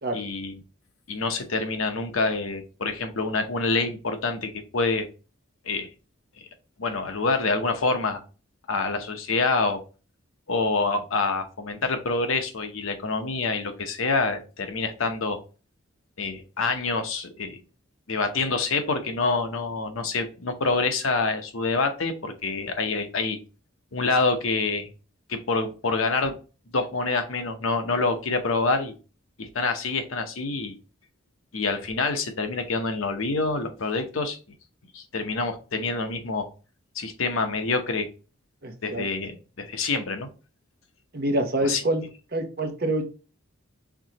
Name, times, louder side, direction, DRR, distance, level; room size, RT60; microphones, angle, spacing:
voice 1, 0.1-0.6 1.1-5.1 5.7-5.9 6.8-8.2 8.7-9.8 10.5-15.4 16.2-17.6 18.1-23.4 23.9-24.9 25.3-26.4 26.7-28.9 29.4-30.7 31.5-34.4 34.9-36.5 36.9-38.1 38.8-40.3 41.6-41.8, left 3 dB, 90° left, 7 dB, 0.8 m, -26 dB
voice 2, 38.6-39.0 41.1-42.0 42.3-43.0, right 1 dB, 50° right, 4 dB, 0.9 m, -26 dB
4.7 x 3.7 x 2.9 m, 0.34 s
head